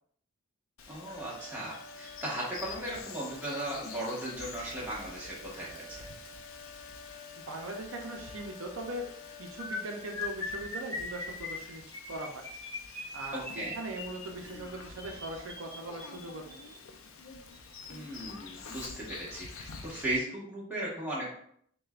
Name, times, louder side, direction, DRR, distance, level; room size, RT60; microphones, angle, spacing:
Bird vocalization bird call bird song, 0.8-20.2, left 5 dB, 70° left, 0.5 m, -48 dB
voice 1, 0.9-6.1 13.3-13.8 17.9-21.3, right 1 dB, 10° right, -7 dB, 1.1 m, -37 dB
sound 1, 1.1-11.0, left 2 dB, 40° left, 1.0 m, -51 dB
voice 2, 7.4-9.1 9.4-12.4 13.1-16.5, right 2 dB, 70° right, 1 dB, 0.5 m, -40 dB
sound 2, 9.6-16.7 17.5-17.7 18.0-18.2 18.5-18.7, left 3 dB, 10° left, 1.3 m, -41 dB
6.4 x 2.2 x 2.4 m, 0.66 s
head